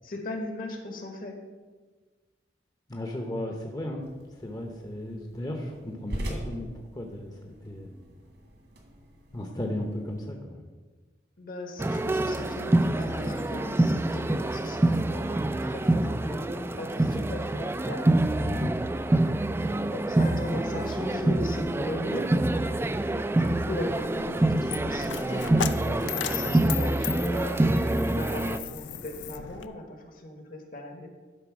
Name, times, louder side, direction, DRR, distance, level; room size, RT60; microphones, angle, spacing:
voice 1, 0.0-1.4 11.4-18.1 19.9-22.3 23.3-27.6 28.1-31.1, left 1 dB, 50° left, 4 dB, 1.3 m, -38 dB
voice 2, 2.9-4.1 4.4-6.7 6.9-7.9 9.3-10.6 18.4-18.7, left 1 dB, 20° left, 2 dB, 0.8 m, -35 dB
sound 1, 4.0-10.3, equal, 75° right, 1.8 m, -42 dB
sound 2, 11.8-28.6, right 1 dB, 15° right, 0.3 m, -26 dB
Coin (dropping), 23.6-29.7, left 9 dB, 90° left, 0.5 m, -37 dB
11.5 x 3.9 x 6.0 m, 1.4 s
head